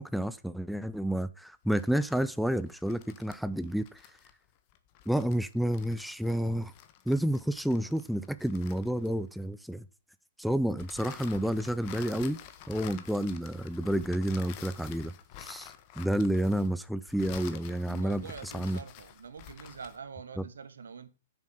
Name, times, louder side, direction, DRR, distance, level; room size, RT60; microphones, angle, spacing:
voice 1, 0.0-4.0 5.1-6.7 7.1-9.9 10.4-12.4 12.7-15.1 15.4-18.8 20.4-20.5, right 1 dB, ahead, 0.5 m, -30 dB
sound 1, 1.6-9.4 10.8-20.1, left 10 dB, 40° left, 1.5 m, -49 dB
voice 2, 17.9-21.1, right 6 dB, 75° right, 1.6 m, -45 dB
8.4 x 7.0 x 6.4 m
hypercardioid pair, 115°, 0 cm